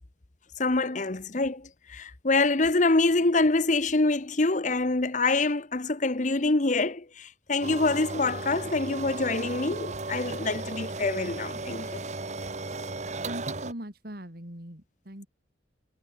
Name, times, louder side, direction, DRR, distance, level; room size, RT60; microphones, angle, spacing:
voice 1, 0.6-11.9, left 3 dB, 40° left, 1.0 m, -25 dB
sound 1, 7.6-13.7, right 3 dB, 40° right, 1.7 m, -35 dB
voice 2, 13.2-15.3, right 1 dB, 55° right, 4.5 m, -40 dB
head